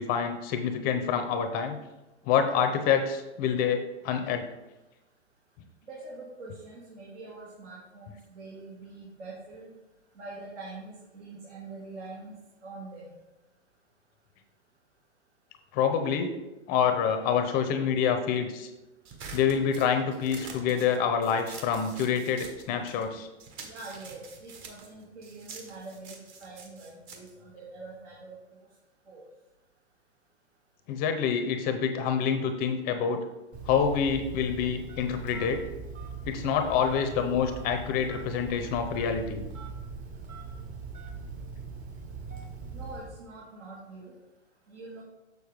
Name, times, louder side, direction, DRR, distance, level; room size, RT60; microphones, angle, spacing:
voice 1, 0.0-1.8 2.2-4.5 15.7-16.3 16.7-18.7 19.3-23.3 30.9-33.2 33.7-35.6 36.2-39.4, left 7 dB, 25° left, 7 dB, 0.6 m, -27 dB
voice 2, 5.9-9.7 10.2-13.1 23.6-28.4 29.1-29.3 42.7-44.1 44.7-45.0, right 3 dB, 75° right, -5 dB, 2.1 m, -44 dB
sound 1, 19.1-23.1 23.4-28.2, right 5 dB, 40° right, 1.3 m, -46 dB
Telephone, 33.5-43.2, right 4 dB, 25° right, 0.8 m, -41 dB
6.6 x 6.5 x 3.4 m, 1.0 s
hypercardioid pair, 135°, 35 cm